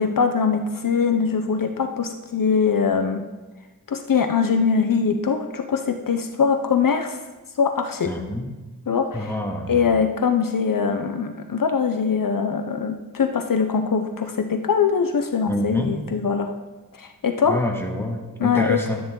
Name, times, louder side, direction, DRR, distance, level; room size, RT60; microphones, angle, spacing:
voice 1, 0.0-3.2 3.9-7.2 7.6-8.1 8.9-9.4 9.7-16.5 16.9-17.7 18.4-18.8, left 6 dB, 70° left, 7 dB, 0.7 m, -22 dB
voice 2, 8.1-8.5 9.1-9.8 15.5-15.9 17.5-19.0, left 1 dB, 5° left, 0 dB, 1.8 m, -27 dB
11.5 x 9.5 x 3.8 m, 1.2 s
wide cardioid pair, 70°, 34 cm